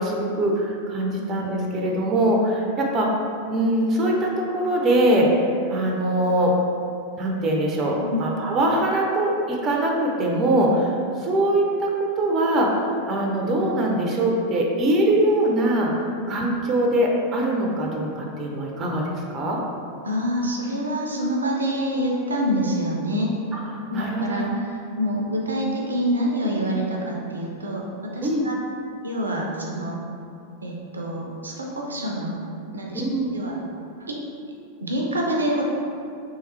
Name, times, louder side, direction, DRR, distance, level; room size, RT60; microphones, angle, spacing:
voice 1, 0.0-3.1 3.5-5.3 5.7-6.5 7.2-12.8 13.1-15.9 16.3-19.6 23.5-23.6 23.9-24.5 28.2-28.5 32.9-33.3, right 1 dB, 25° right, -1 dB, 0.5 m, -22 dB
voice 2, 7.9-8.2 16.2-16.3 20.0-23.4 23.9-28.6 29.0-30.0 30.6-32.4 32.7-33.0 33.3-33.6 34.1-34.2 34.8-35.6, equal, 75° right, -1 dB, 0.5 m, -26 dB
3.4 x 3.1 x 3.2 m, 2.5 s
figure-of-eight pair, 90°, 0 cm